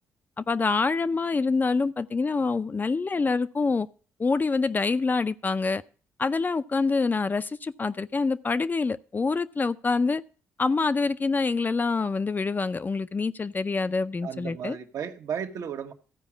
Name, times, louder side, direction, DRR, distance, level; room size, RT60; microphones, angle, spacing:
voice 1, 0.4-3.9 4.2-5.8 6.2-10.2 10.6-14.8, left 4 dB, 30° left, 0.5 m, -26 dB
voice 2, 14.2-15.9, right 8 dB, 65° right, 1.2 m, -34 dB
14.0 x 4.8 x 7.2 m
supercardioid pair, 65°, 6 cm